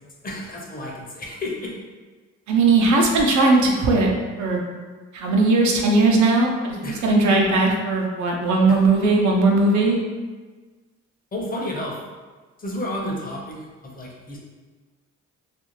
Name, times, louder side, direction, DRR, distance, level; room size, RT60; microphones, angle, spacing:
voice 1, 0.2-1.7 6.8-7.1 8.7-8.8 11.3-11.9 12.6-14.4, left 1 dB, 30° left, -2 dB, 0.6 m, -31 dB
voice 2, 2.5-4.1 4.4-4.6 5.1-10.0, right 3 dB, 70° right, 0 dB, 0.6 m, -18 dB
2.5 x 2.3 x 3.0 m, 1.3 s
cardioid pair, 90°, 30 cm